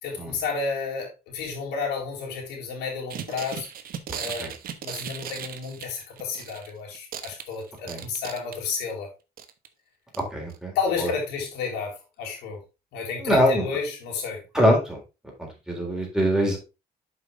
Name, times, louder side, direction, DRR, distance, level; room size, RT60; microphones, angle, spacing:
voice 1, 0.0-3.7 4.1-4.5 4.8-9.1 10.7-12.6 12.9-14.4, left 5 dB, 85° left, -1 dB, 4.0 m, -31 dB
sound 1, 3.1-6.7 6.9-8.9 9.4-9.7 10.1-10.2 10.5-10.6, right 9 dB, 60° right, 1.1 m, -37 dB
voice 2, 10.3-11.1 13.2-13.7 14.5-15.0 15.4-16.6, equal, 5° right, 0 dB, 3.7 m, -23 dB
7.8 x 5.5 x 3.7 m, 0.28 s
cardioid pair, 110°, 17 cm